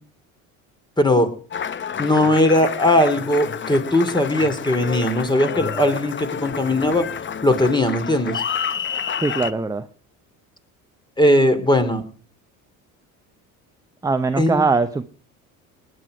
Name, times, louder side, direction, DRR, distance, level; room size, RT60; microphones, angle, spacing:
voice 1, 1.0-1.3 2.0-7.1 7.4-8.4 11.2-12.0 14.4-14.6, left 1 dB, 10° left, 9 dB, 2.7 m, -19 dB
Applause, 1.5-9.5, left 7 dB, 30° left, 0.8 m, -29 dB
voice 2, 9.2-9.8 14.0-15.0, right 3 dB, 10° right, 9 dB, 0.8 m, -21 dB
20.0 x 9.8 x 4.9 m, 0.41 s
hypercardioid pair, 70°, 41 cm